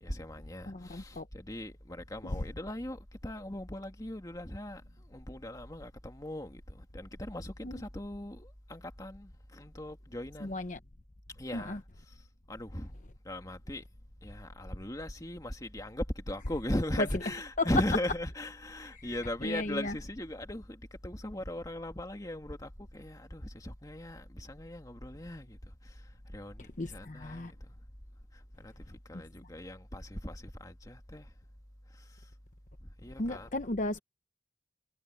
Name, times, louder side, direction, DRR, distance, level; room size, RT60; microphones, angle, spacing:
voice 1, 0.0-4.8 5.1-10.6 11.4-11.8 12.5-12.9 13.3-13.8 14.2-25.6 26.3-27.6 28.6-31.3 33.0-33.6, left 1 dB, 20° left, 2.0 m, -38 dB
voice 2, 0.7-1.3 2.3-2.4 7.6-7.8 10.4-10.8 11.5-11.8 17.0-17.1 17.6-17.7 18.9-20.0 26.8-27.5 33.2-34.0, left 2 dB, 45° left, 0.9 m, -35 dB
head